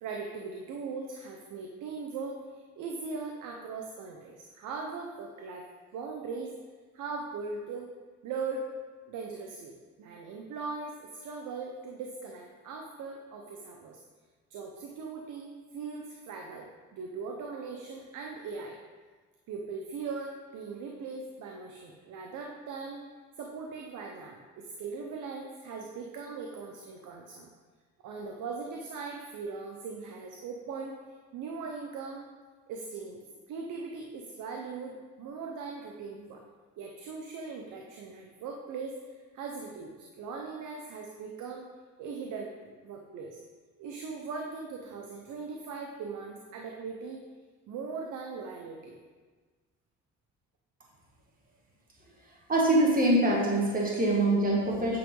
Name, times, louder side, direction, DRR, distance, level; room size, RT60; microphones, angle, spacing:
voice 1, 0.0-5.7 5.9-6.5 6.9-7.9 8.2-8.7 9.1-14.0 14.5-18.8 19.5-23.0 23.4-27.5 28.0-31.0 31.3-32.3 32.7-33.2 33.5-36.4 36.8-41.7 42.0-42.5 42.8-43.4 43.8-47.2 47.7-49.0, right 4 dB, 85° right, 1 dB, 0.9 m, -39 dB
voice 2, 52.5-55.0, right 1 dB, 30° right, -2 dB, 1.6 m, -24 dB
9.0 x 6.1 x 3.8 m, 1.4 s
cardioid pair, 90°, 30 cm